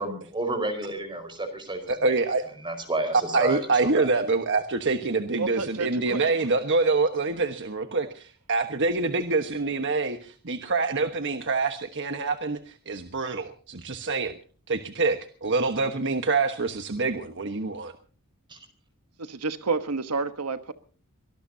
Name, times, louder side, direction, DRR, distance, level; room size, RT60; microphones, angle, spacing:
voice 1, 0.0-2.1 2.6-4.1 18.5-18.6, right 2 dB, 20° right, 4.7 m, -31 dB
voice 2, 1.9-2.4 3.3-14.3 14.7-17.9, right 3 dB, 55° right, 1.3 m, -26 dB
voice 3, 5.4-6.4 19.2-20.7, right 4 dB, 90° right, 1.2 m, -30 dB
24.5 x 18.5 x 2.8 m
head